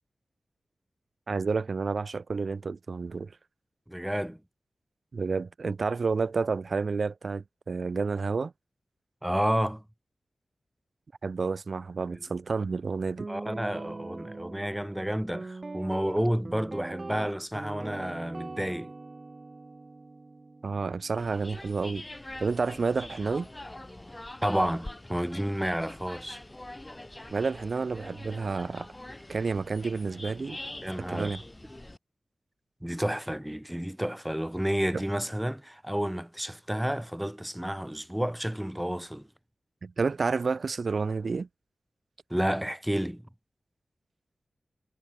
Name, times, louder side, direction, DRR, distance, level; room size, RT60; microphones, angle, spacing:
voice 1, 1.3-3.3 5.1-8.5 11.2-13.3 20.6-22.1 22.4-23.5 27.3-28.9 29.3-30.6 31.1-31.4 39.8-41.5, right 4 dB, 60° right, 4.6 m, -30 dB
voice 2, 3.9-4.4 9.2-9.8 12.1-12.2 13.3-18.9 24.4-26.4 30.8-31.3 32.8-39.3 42.3-43.3, equal, 5° right, 5.6 m, -30 dB
Guitar, 13.2-21.4, right 3 dB, 40° right, 2.1 m, -42 dB
sound 1, 21.2-32.0, left 1 dB, 20° left, 3.7 m, -44 dB
wide cardioid pair, 75°, 0 cm